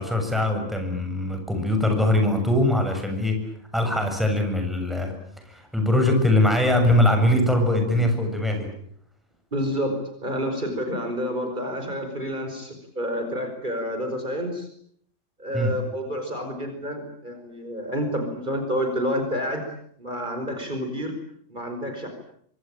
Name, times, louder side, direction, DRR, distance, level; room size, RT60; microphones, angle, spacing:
voice 1, 0.0-3.4 3.7-5.1 5.4-8.7 15.5-15.7, left 1 dB, ahead, 4 dB, 7.3 m, -22 dB
voice 2, 9.5-14.7 15.4-19.7 20.0-21.2 21.5-22.1, equal, 40° right, 5 dB, 5.3 m, -29 dB
25.5 x 25.0 x 9.0 m, 0.66 s
omnidirectional pair, 1.3 m